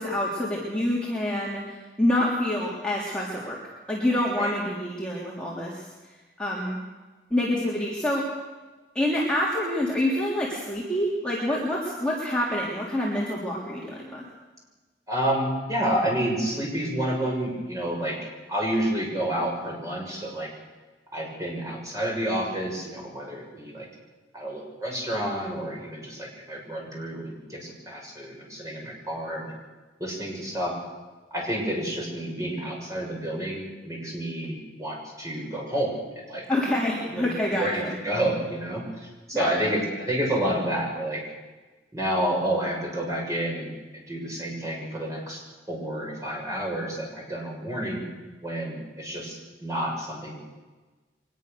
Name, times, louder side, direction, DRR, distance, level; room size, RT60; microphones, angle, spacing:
voice 1, 0.0-3.6 3.9-5.8 6.4-6.8 7.3-8.3 8.9-14.2 36.5-38.0 39.3-39.5, left 1 dB, 5° left, -5 dB, 3.4 m, -27 dB
voice 2, 15.1-18.2 18.5-20.5 21.1-23.9 24.3-29.5 30.0-30.7 31.3-36.4 37.1-41.2 41.9-48.0 48.4-50.4, right 1 dB, 20° right, -2 dB, 6.8 m, -29 dB
23.5 x 20.0 x 6.8 m, 1.2 s
head